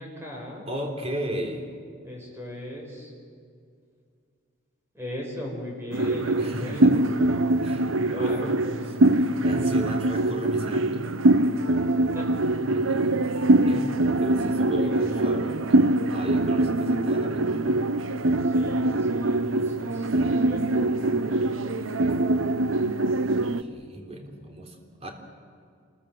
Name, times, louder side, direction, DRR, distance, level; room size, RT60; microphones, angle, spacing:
voice 1, 0.0-0.7 2.0-3.1 4.9-7.1 7.9-8.6 12.1-12.3 14.3-15.4 18.4-21.9, left 1 dB, 10° right, 0 dB, 5.7 m, -39 dB
voice 2, 0.7-1.7 6.0-7.0 7.6-8.8 9.1-11.0 12.7-13.1 13.7-17.5 23.3-24.8 25.0-25.1, equal, 30° right, 3 dB, 3.5 m, -35 dB
sound 1, 5.9-23.6, right 2 dB, 75° right, 0.8 m, -23 dB
27.5 x 21.5 x 7.7 m, 2.2 s
head